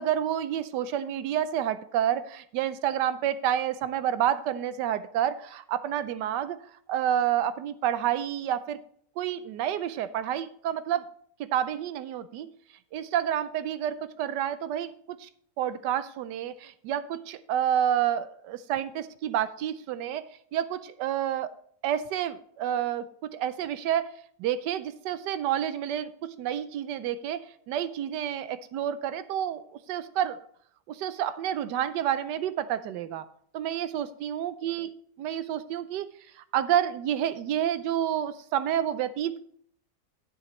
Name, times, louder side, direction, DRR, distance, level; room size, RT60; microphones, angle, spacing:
voice 1, 0.0-6.6 6.9-8.8 9.2-11.1 11.4-12.5 12.9-15.3 15.6-20.3 20.5-21.5 21.8-24.1 24.4-29.6 29.9-30.4 30.9-33.2 33.5-34.9 35.2-36.1 36.4-39.4, right 10 dB, 80° right, 14 dB, 1.2 m, -29 dB
10.5 x 8.9 x 3.1 m, 0.63 s
omnidirectional pair, 1.8 m